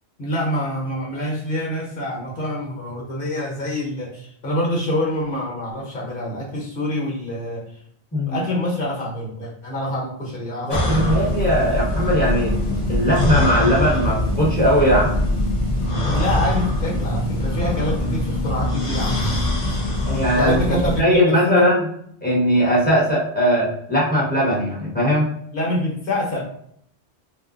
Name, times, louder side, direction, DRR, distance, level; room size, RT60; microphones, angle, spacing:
voice 1, 0.2-7.6 8.3-11.2 16.1-19.4 20.4-21.7 25.5-26.4, left 1 dB, 55° left, -3 dB, 1.4 m, -26 dB
voice 2, 10.6-12.6 12.9-15.1 20.0-21.8 22.2-25.3, equal, 10° left, -6 dB, 1.2 m, -19 dB
sound 1, 10.7-21.0, left 1 dB, 35° left, 0.7 m, -22 dB
3.9 x 2.5 x 2.5 m, 0.68 s
omnidirectional pair, 1.1 m